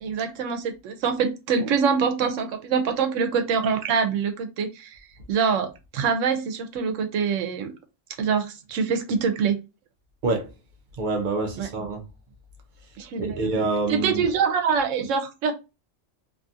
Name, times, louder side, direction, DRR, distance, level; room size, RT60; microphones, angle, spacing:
voice 1, 0.0-5.0 5.3-7.7 8.2-9.6 11.6-11.7 13.0-13.5 13.9-15.5, right 6 dB, 85° right, 1.0 m, -25 dB
voice 2, 11.0-12.0 13.2-14.2, right 3 dB, 55° right, 0.6 m, -26 dB
2.7 x 2.3 x 2.6 m
omnidirectional pair, 1.3 m